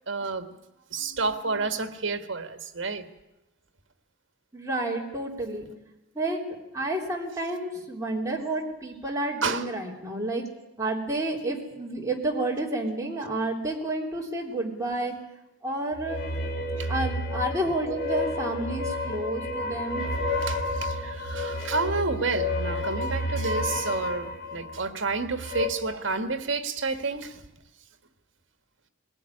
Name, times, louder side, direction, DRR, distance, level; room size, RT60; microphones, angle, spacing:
voice 1, 0.1-0.5 0.9-3.0 9.4-9.7 16.8-16.9 20.4-27.4, right 4 dB, 65° right, 8 dB, 1.7 m, -30 dB
voice 2, 4.5-5.7 6.1-6.4 6.7-10.4 10.8-15.1 15.6-16.2 16.9-20.1, right 2 dB, 15° right, -1 dB, 3.3 m, -30 dB
sound 1, 15.9-25.7, left 1 dB, 45° left, 3.2 m, -30 dB
21.0 x 16.0 x 9.9 m, 0.95 s
head